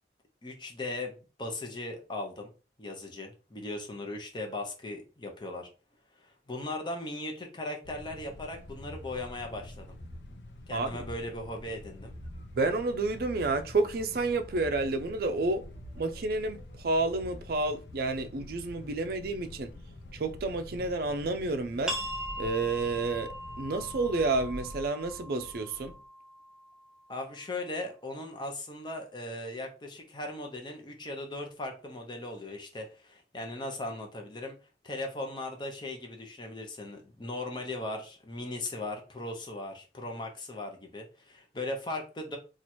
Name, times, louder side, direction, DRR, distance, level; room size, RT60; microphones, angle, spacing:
voice 1, 0.4-2.5 2.8-5.7 6.2-10.0 10.7-12.1 27.1-34.6 34.8-42.4, left 2 dB, 25° left, 0.7 m, -38 dB
sound 1, 7.8-24.8, left 2 dB, 80° left, 0.6 m, -48 dB
sound 2, 8.8-26.0, right 1 dB, 40° left, 1.5 m, -50 dB
voice 2, 12.5-15.6 15.9-19.7 20.1-22.0 22.4-25.9, right 3 dB, 55° right, 0.4 m, -30 dB
sound 3, 21.9-27.2, equal, 5° right, 0.8 m, -40 dB
2.9 x 2.4 x 4.2 m
head